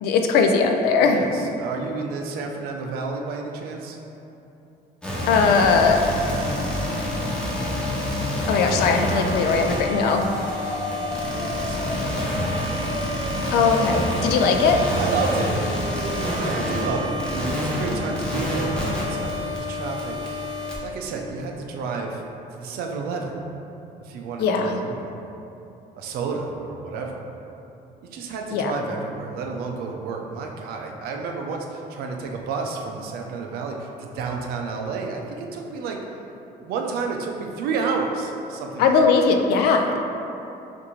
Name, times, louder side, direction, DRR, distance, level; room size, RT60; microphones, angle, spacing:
voice 1, 0.0-1.2 5.3-6.0 8.5-10.3 13.5-14.8 24.4-24.8 28.5-28.7 38.8-39.9, left 5 dB, 85° left, 4 dB, 0.4 m, -19 dB
voice 2, 1.0-4.0 10.7-12.6 14.2-14.3 15.0-15.6 16.0-20.5 20.8-22.2 22.6-23.4 24.0-25.2 26.0-27.3 28.0-36.0 36.6-39.2, right 4 dB, 70° right, 2 dB, 0.5 m, -31 dB
sound 1, 5.0-20.8, left 1 dB, 5° left, 0.6 m, -27 dB
5.8 x 2.6 x 3.1 m, 2.9 s
cardioid pair, 170°, 16 cm